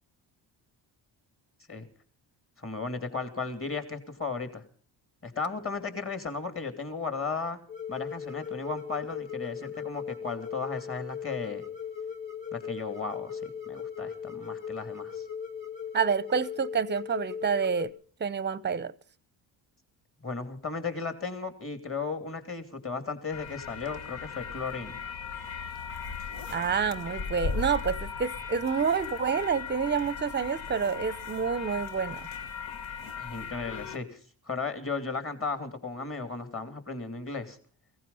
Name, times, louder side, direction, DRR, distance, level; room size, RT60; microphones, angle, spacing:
voice 1, 2.6-4.6 5.2-7.6 7.9-11.6 12.5-15.3 20.2-25.0 33.2-34.2 34.5-37.6, left 4 dB, 30° left, 2.8 m, -35 dB
sound 1, 7.7-17.9, left 7 dB, 45° left, 3.6 m, -38 dB
voice 2, 15.9-17.9 18.2-18.9 26.5-32.3, right 6 dB, 25° right, 0.7 m, -28 dB
sound 2, 23.3-34.0, left 5 dB, 70° left, 1.4 m, -37 dB
16.0 x 15.5 x 5.5 m
supercardioid pair, 60°, 47 cm